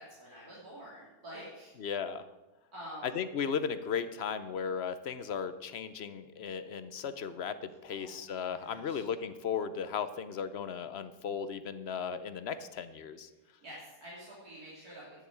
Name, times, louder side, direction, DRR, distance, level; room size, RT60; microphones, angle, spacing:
voice 1, 0.0-1.7 2.7-3.2 7.9-8.2 8.6-9.0 13.6-15.2, equal, 70° right, -7 dB, 3.5 m, -48 dB
voice 2, 1.8-2.3 3.0-13.3, left 7 dB, 55° left, 12 dB, 0.8 m, -36 dB
11.0 x 6.9 x 8.4 m, 1.1 s
omnidirectional pair, 1.6 m